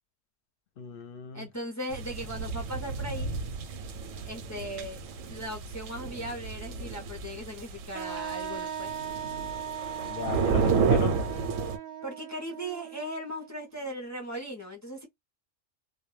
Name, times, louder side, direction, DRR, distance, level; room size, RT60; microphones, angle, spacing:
voice 1, 0.8-1.5 10.0-11.2, left 5 dB, 55° left, 0.7 m, -36 dB
voice 2, 1.3-3.3 4.2-5.0 5.3-8.9 12.0-15.1, equal, 25° left, 0.4 m, -38 dB
sound 1, 1.9-11.8, right 5 dB, 85° right, 1.0 m, -31 dB
Wind instrument woodwind instrument, 7.9-13.7, right 8 dB, 65° right, 0.7 m, -38 dB
2.2 x 2.2 x 3.0 m
omnidirectional pair, 1.3 m